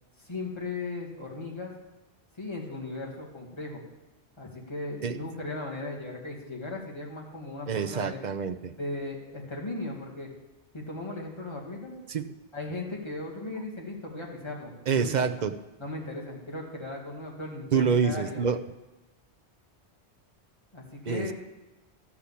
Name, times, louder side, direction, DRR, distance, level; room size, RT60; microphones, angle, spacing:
voice 1, 0.2-1.7 2.4-3.8 4.4-8.2 8.8-10.3 10.7-11.9 12.5-15.1 15.8-18.4 20.7-21.3, left 2 dB, 25° left, -3 dB, 2.4 m, -37 dB
voice 2, 7.7-8.7 12.1-12.2 14.9-15.5 17.7-18.6 21.1-21.3, right 6 dB, 50° right, 10 dB, 0.7 m, -26 dB
13.0 x 6.0 x 8.5 m, 1.1 s
omnidirectional pair, 1.1 m